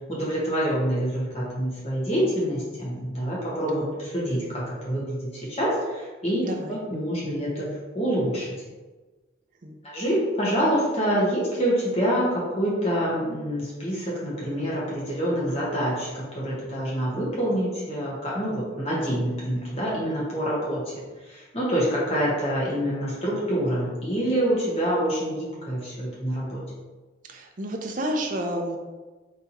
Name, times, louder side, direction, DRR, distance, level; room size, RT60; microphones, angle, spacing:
voice 1, 0.1-7.7 7.9-8.5 9.8-20.9 21.2-26.6, equal, 35° left, -6 dB, 1.4 m, -26 dB
voice 2, 6.4-6.7 9.6-9.8 27.3-28.8, right 1 dB, 45° right, 3 dB, 0.5 m, -30 dB
4.1 x 3.6 x 2.9 m, 1.3 s
head